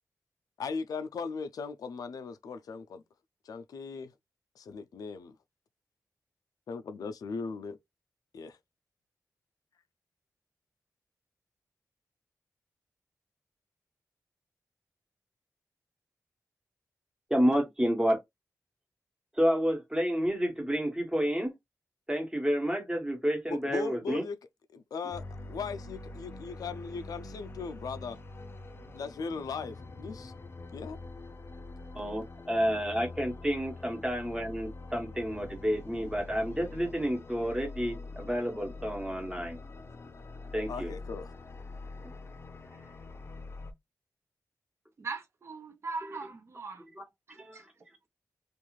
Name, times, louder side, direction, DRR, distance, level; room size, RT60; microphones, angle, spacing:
voice 1, 0.6-3.0 3.4-4.1 4.6-5.4 6.7-7.8 8.3-8.6 23.5-24.4 24.7-28.2 28.9-30.3 30.7-31.0 40.7-41.3, left 5 dB, 90° left, 0.4 m, -38 dB
voice 2, 17.3-18.2 19.3-21.5 22.1-24.2 31.9-39.6 40.5-40.9 42.0-42.1 47.0-47.1 47.3-47.7, equal, 15° right, 1.1 m, -30 dB
sound 1, 25.1-43.7, left 3 dB, 40° left, 0.6 m, -45 dB
voice 3, 45.0-46.9 47.3-47.6, right 4 dB, 45° right, 0.6 m, -40 dB
2.5 x 2.3 x 3.0 m
wide cardioid pair, 100°, 6 cm